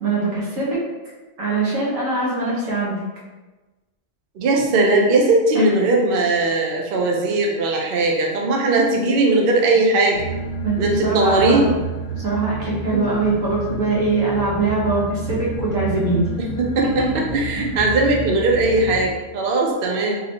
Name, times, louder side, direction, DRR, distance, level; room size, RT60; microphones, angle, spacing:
voice 1, 0.0-0.8 1.4-3.0 5.5-5.6 10.6-11.6 12.2-16.2 16.8-17.1 17.6-17.7, right 3 dB, 85° right, -6 dB, 1.6 m, -22 dB
voice 2, 4.4-10.2 10.8-11.7 12.9-13.0 16.6-20.2, right 2 dB, 55° right, 0 dB, 0.7 m, -19 dB
sound 1, 10.1-19.1, right 3 dB, 60° left, 0.8 m, -30 dB
3.9 x 2.9 x 2.8 m, 1.2 s
omnidirectional pair, 1.3 m